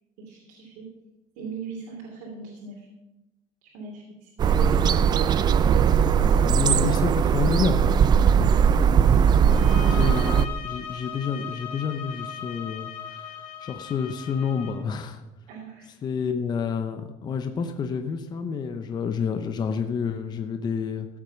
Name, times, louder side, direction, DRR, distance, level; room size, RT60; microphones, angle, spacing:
voice 1, 0.3-0.8 1.3-2.9 3.6-5.0 8.3-8.6 9.3-9.9 15.5-15.9, right 5 dB, 70° right, -3 dB, 3.1 m, -40 dB
sound 1, 4.4-10.5, right 7 dB, 30° right, 0.4 m, -19 dB
voice 2, 6.5-7.9 9.9-13.3 13.6-15.2 16.0-21.1, left 6 dB, 25° left, 7 dB, 0.8 m, -29 dB
sound 2, 9.5-14.8, left 8 dB, 60° left, 2.6 m, -38 dB
14.5 x 8.2 x 5.8 m, 0.99 s
cardioid pair, 160°, 16 cm